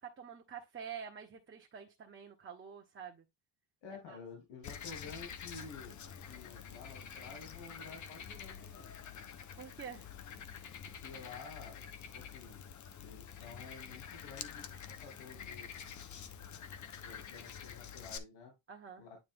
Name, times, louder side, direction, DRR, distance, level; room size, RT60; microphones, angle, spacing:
voice 1, 0.0-3.2 4.1-4.2 9.6-10.1 18.7-19.1, right 7 dB, 25° right, 1.3 m, -47 dB
voice 2, 3.8-9.0 10.8-12.6 13.0-15.7 16.8-18.5 19.0-19.2, left 4 dB, 75° left, 2.7 m, -51 dB
Frog, 4.6-18.2, left 7 dB, 40° left, 1.0 m, -48 dB
9.7 x 3.2 x 3.6 m
cardioid pair, 125°, 44 cm